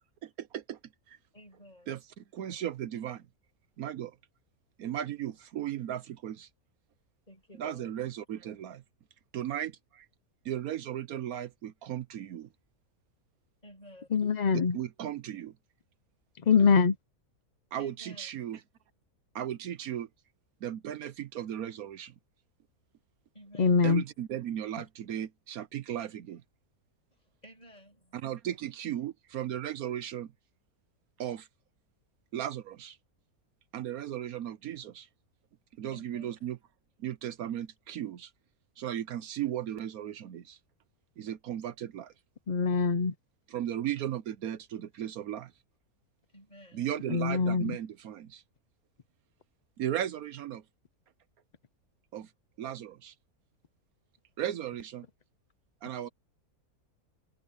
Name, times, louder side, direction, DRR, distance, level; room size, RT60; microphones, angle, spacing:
voice 1, 0.2-0.8 1.1-1.2 1.9-3.2 3.8-4.2 4.8-6.5 7.6-8.8 9.3-10.1 10.4-12.5 14.7-15.5 17.7-18.6 19.3-20.1 20.6-22.1 23.8-26.4 28.1-30.3 31.2-31.5 32.3-33.0 33.7-35.1 35.8-36.6 37.0-38.3 38.8-40.6 41.2-42.1 43.5-45.5 46.7-48.4 49.8-50.6 52.1-52.3 52.6-53.1 54.4-55.0 55.8-56.1, right 11 dB, 75° right, 1.2 m, -36 dB
voice 2, 1.3-2.0 5.1-5.3 7.3-8.0 13.6-14.2 17.8-18.3 23.3-23.9 27.1-28.2 35.9-36.4 46.3-46.9, equal, 25° left, 7.2 m, -53 dB
voice 3, 14.1-14.8 16.5-16.9 23.6-24.0 42.5-43.1 47.1-47.8, left 5 dB, 45° left, 0.5 m, -24 dB
omnidirectional pair, 1.6 m